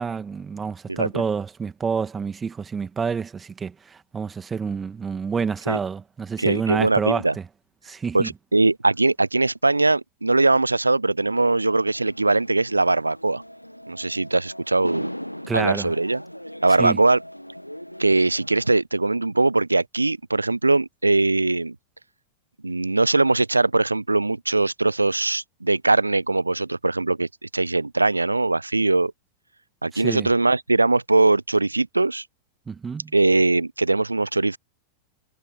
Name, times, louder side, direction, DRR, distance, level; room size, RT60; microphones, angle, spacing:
voice 1, 0.0-7.5 7.8-8.3 15.5-15.9 16.8-17.0 29.9-30.3 32.7-33.1, right 6 dB, 15° right, 2.3 m, -28 dB
voice 2, 0.9-1.2 5.7-5.8 6.4-7.3 8.1-13.4 13.9-15.1 15.5-16.2 16.6-17.2 18.0-21.8 22.6-29.1 29.8-32.2 33.1-34.6, right 2 dB, 80° right, 0.7 m, -21 dB
sound 1, 11.2-18.8, equal, 90° left, 1.6 m, -39 dB
figure-of-eight pair, 90°, 0 cm